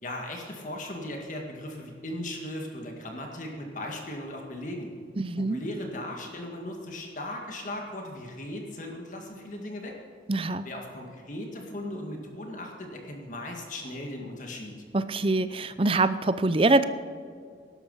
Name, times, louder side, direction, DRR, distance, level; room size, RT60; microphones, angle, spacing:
voice 1, 0.0-4.9 5.4-9.9 10.6-14.7, left 1 dB, 45° left, 1 dB, 2.0 m, -37 dB
voice 2, 5.2-5.6 10.3-10.7 14.9-16.8, right 2 dB, 30° right, 13 dB, 0.5 m, -24 dB
17.0 x 12.0 x 5.6 m, 2.1 s
head